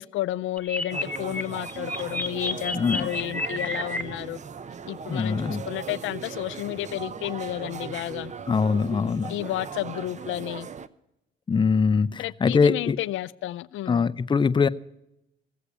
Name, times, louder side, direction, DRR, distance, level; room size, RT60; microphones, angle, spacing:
voice 1, 0.0-4.4 4.9-8.3 9.3-10.7 12.2-14.0, left 14 dB, 80° left, 0.4 m, -31 dB
sound 1, 0.6-4.0, left 2 dB, 10° left, 1.4 m, -31 dB
sound 2, 0.9-10.9, right 6 dB, 35° right, 0.7 m, -38 dB
voice 2, 2.7-3.1 5.1-5.6 8.5-9.4 11.5-13.0 13.9-14.7, left 5 dB, 25° left, 0.5 m, -22 dB
16.0 x 8.2 x 8.4 m
cardioid pair, 90°, 20 cm